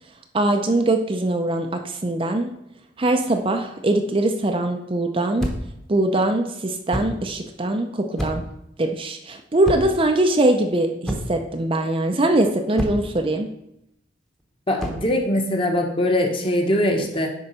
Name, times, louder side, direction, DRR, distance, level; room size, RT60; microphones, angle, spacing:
voice 1, 0.3-2.5 3.0-5.5 5.9-8.5 8.8-13.5, right 1 dB, 30° right, 5 dB, 0.5 m, -22 dB
sound 1, 5.4-5.8 6.9-7.2 8.2-8.6 9.6-10.1 11.1-11.5 12.8-13.2 14.8-15.1, equal, ahead, 1.0 m, -28 dB
voice 2, 14.7-17.3, left 1 dB, 30° left, 2 dB, 1.2 m, -22 dB
9.8 x 3.9 x 5.5 m, 0.80 s
head